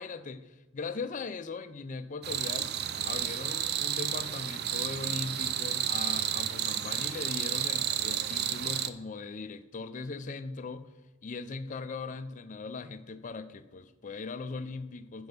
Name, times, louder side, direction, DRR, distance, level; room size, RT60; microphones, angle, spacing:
voice 1, 0.0-11.0 11.2-15.3, left 4 dB, 35° left, 11 dB, 0.4 m, -39 dB
sound 1, 2.2-8.9, right 9 dB, 50° right, 0.4 m, -31 dB
9.6 x 6.2 x 5.1 m, 1.1 s
head